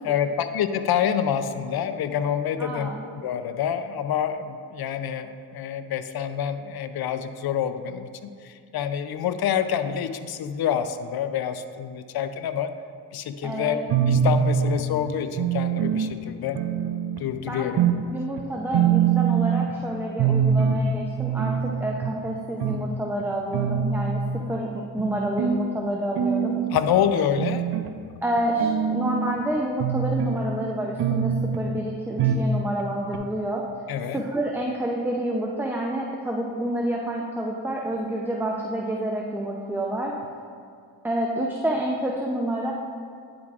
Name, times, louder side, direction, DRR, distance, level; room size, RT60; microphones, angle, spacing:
voice 1, 0.0-12.7 13.1-13.8 14.1-16.6 17.2-17.8 26.7-27.7 33.9-34.2, left 8 dB, 55° left, 9 dB, 0.5 m, -27 dB
voice 2, 2.6-3.0 13.4-13.8 17.5-17.7 18.1-26.6 28.2-33.6 34.1-40.1 41.0-42.7, right 1 dB, 5° right, -1 dB, 0.6 m, -28 dB
sound 1, 13.9-14.9 15.4-16.1 16.5-17.2 17.8-18.0 18.4-18.5 18.7-19.7 20.2-20.8 21.2-22.2 22.6-22.8 23.2-23.3 23.5-24.4 25.0-25.6 26.1-26.8 27.4-27.9 28.4-29.4 29.8-30.4 31.0-31.6 32.2-32.5 32.8-32.9 33.1-33.2, right 7 dB, 60° right, 0.6 m, -23 dB
10.0 x 4.8 x 2.4 m, 2.2 s
supercardioid pair, 50°, 45 cm